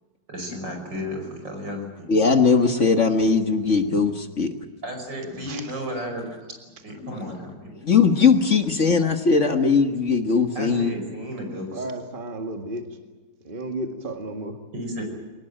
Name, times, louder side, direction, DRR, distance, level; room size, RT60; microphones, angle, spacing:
voice 1, 0.3-1.9 4.8-6.6 6.8-7.7 10.5-11.9 14.7-15.0, equal, 75° right, 3 dB, 6.3 m, -33 dB
voice 2, 2.1-4.5 7.0-7.2 7.8-10.9, left 5 dB, 45° left, 7 dB, 1.7 m, -19 dB
voice 3, 11.7-12.8 13.4-14.6, right 2 dB, 30° right, 5 dB, 2.1 m, -32 dB
24.0 x 19.5 x 9.0 m, 1.3 s
omnidirectional pair, 2.0 m